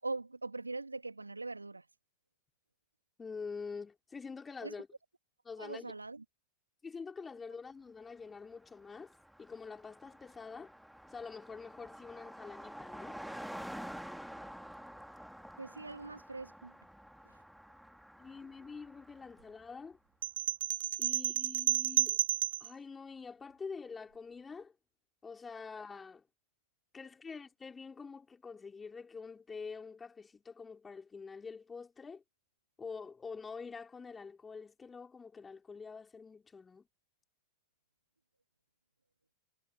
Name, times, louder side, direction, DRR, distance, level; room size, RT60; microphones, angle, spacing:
voice 1, 0.0-1.8 4.6-4.7 5.6-6.2 15.6-16.7, right 3 dB, 80° right, 2.2 m, -41 dB
voice 2, 3.2-4.9 5.4-5.9 6.8-10.7 11.1-13.2 18.2-20.0 21.0-22.2 22.6-24.7 25.2-26.2 26.9-32.2 32.8-36.9, left 5 dB, 15° left, 4.4 m, -46 dB
Car passing by, 8.3-8.4 8.6-19.7, equal, ahead, 2.2 m, -49 dB
sound 1, 20.2-22.7, right 11 dB, 60° right, 0.8 m, -31 dB
figure-of-eight pair, 90°, 0 cm